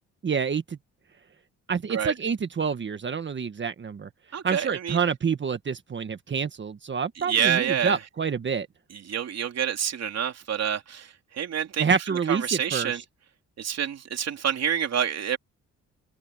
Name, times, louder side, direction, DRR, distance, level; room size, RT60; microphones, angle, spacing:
voice 1, 0.2-0.8 1.7-4.1 4.4-8.7 11.8-12.9, right 6 dB, 40° right, 1.6 m, -27 dB
voice 2, 4.3-5.0 7.2-8.0 8.9-11.8 12.1-13.0 13.6-15.4, right 8 dB, 60° right, 3.4 m, -28 dB
cardioid pair, 90°, 30 cm